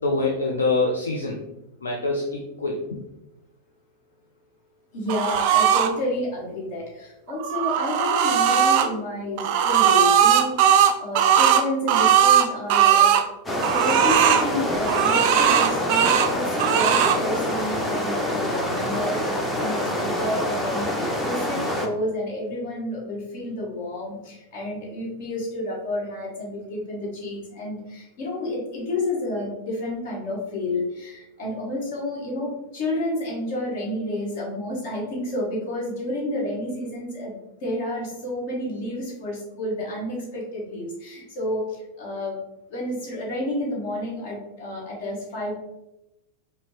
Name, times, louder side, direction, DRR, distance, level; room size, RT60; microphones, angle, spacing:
voice 1, 0.0-1.4 1.8-3.0, left 3 dB, 70° left, 0 dB, 0.4 m, -25 dB
voice 2, 4.9-13.2 13.7-42.4 42.7-45.6, left 1 dB, 50° left, -3 dB, 1.3 m, -30 dB
sound 1, 5.1-5.9 7.3-8.9 9.4-13.2 13.6-14.5 14.8-16.3 16.6-17.2, right 9 dB, 45° right, 0.3 m, -18 dB
sound 2, 13.5-21.9, left 1 dB, 10° left, 0.6 m, -26 dB
4.8 x 2.1 x 3.2 m, 0.92 s
figure-of-eight pair, 90°, 0 cm